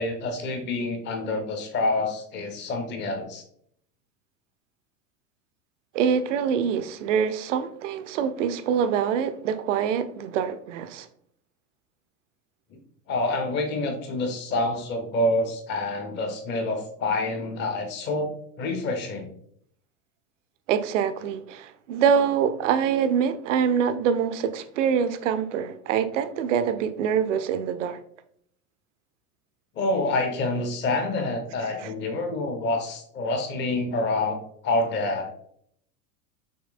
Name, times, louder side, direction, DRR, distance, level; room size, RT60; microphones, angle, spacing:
voice 1, 0.0-3.4 13.1-18.3 18.6-19.3 29.8-34.4 34.6-35.3, left 2 dB, 25° left, 0.7 m, -27 dB
voice 2, 5.9-11.1 20.7-28.0 31.8-31.9, right 7 dB, 50° right, 0.5 m, -25 dB
6.4 x 3.1 x 2.4 m
figure-of-eight pair, 85°, 47 cm